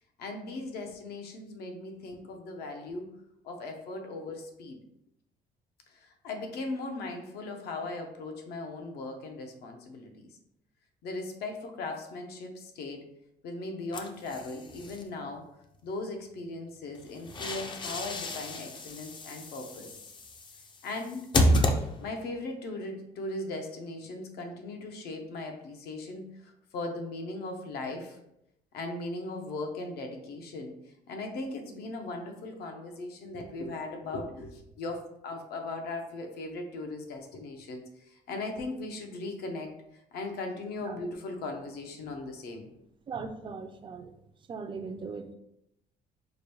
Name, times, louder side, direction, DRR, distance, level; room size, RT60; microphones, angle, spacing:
voice 1, 0.2-3.1 3.4-4.8 5.9-10.3 11.0-13.1 13.4-15.5 15.8-20.0 20.8-21.3 22.0-28.2 28.7-42.7, left 2 dB, 70° left, 4 dB, 0.7 m, -38 dB
sound 1, 13.9-15.0 17.0-22.3, left 1 dB, 30° left, 0.4 m, -31 dB
voice 2, 43.1-44.1 44.5-45.4, right 5 dB, 30° right, 7 dB, 0.4 m, -39 dB
4.9 x 2.2 x 3.0 m, 0.82 s
cardioid pair, 110°, 17 cm